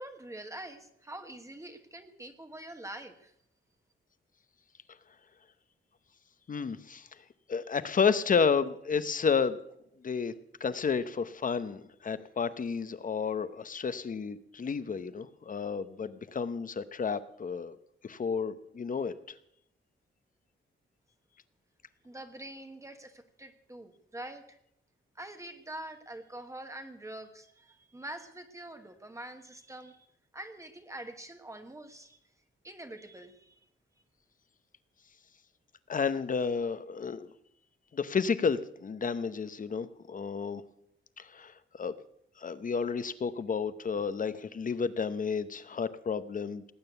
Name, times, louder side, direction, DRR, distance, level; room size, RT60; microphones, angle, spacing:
voice 1, 0.0-3.3 22.0-24.6 25.1-30.1 30.3-32.2 32.6-33.6, right 1 dB, 15° right, 6 dB, 1.2 m, -45 dB
voice 2, 6.5-7.1 7.5-9.6 10.0-10.3 10.6-17.8 18.0-19.1 35.9-37.3 37.9-40.6 41.2-41.9 42.4-46.7, left 5 dB, 40° left, 13 dB, 0.8 m, -31 dB
18.5 x 9.1 x 8.0 m, 0.75 s
wide cardioid pair, 150°, 20 cm